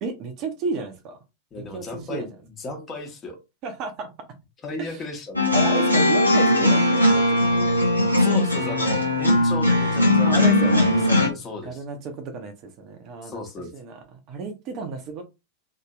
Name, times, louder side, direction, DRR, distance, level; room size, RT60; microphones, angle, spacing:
voice 1, 0.0-1.2 1.7-2.3 3.6-4.1 4.8-5.0 5.5-7.7 10.2-10.9 11.6-13.4 13.7-15.2, right 4 dB, 40° right, 0.6 m, -32 dB
voice 2, 1.5-2.3 2.6-3.4 4.6-5.5 8.1-10.4 10.6-11.8 13.2-13.7, left 3 dB, 25° left, 1.0 m, -35 dB
sound 1, 5.4-11.3, left 1 dB, 85° left, 0.8 m, -19 dB
2.7 x 2.7 x 2.3 m
figure-of-eight pair, 90°, 0 cm